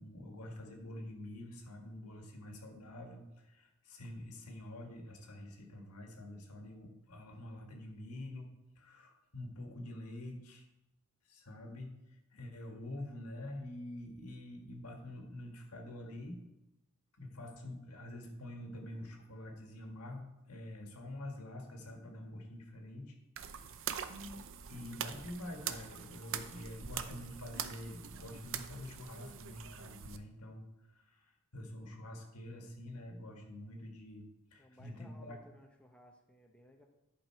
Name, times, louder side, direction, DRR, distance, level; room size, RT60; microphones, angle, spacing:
voice 1, 0.0-10.6 11.3-12.0 12.3-16.4 17.2-23.1 23.5-35.4, left 1 dB, 85° left, 2 dB, 1.7 m, -47 dB
sound 1, 23.4-30.2, right 8 dB, 60° right, 0.6 m, -43 dB
voice 2, 34.6-36.9, left 1 dB, 5° left, 1 dB, 0.9 m, -60 dB
11.0 x 5.5 x 4.5 m, 0.94 s
head